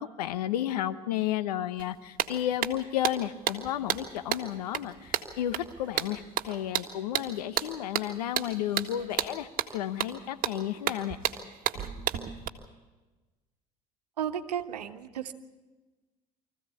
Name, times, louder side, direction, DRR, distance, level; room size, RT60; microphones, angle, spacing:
voice 1, 0.0-11.2, left 11 dB, 80° left, 12 dB, 1.1 m, -32 dB
sound 1, 1.8-1.9 2.2-12.5, right 10 dB, 45° right, 1.8 m, -32 dB
voice 2, 14.2-15.3, right 9 dB, 90° right, 7 dB, 1.3 m, -33 dB
24.5 x 15.5 x 8.4 m, 1.2 s
hypercardioid pair, 75°, 20 cm